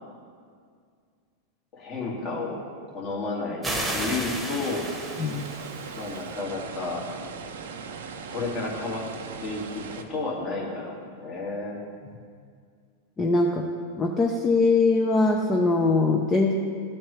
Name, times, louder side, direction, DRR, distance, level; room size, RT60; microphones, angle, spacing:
voice 1, 1.7-3.7 3.9-4.8 6.0-7.0 8.3-9.1 9.4-11.8, left 3 dB, 40° left, -3 dB, 2.0 m, -32 dB
sound 1, 3.6-6.2, right 1 dB, 10° right, 1.2 m, -32 dB
sound 2, 4.6-10.0, right 5 dB, 80° right, 0.6 m, -39 dB
voice 2, 13.2-13.6 14.0-16.5, left 3 dB, 20° left, 0 dB, 0.6 m, -22 dB
12.5 x 4.4 x 3.2 m, 2.1 s
hypercardioid pair, 115°, 0 cm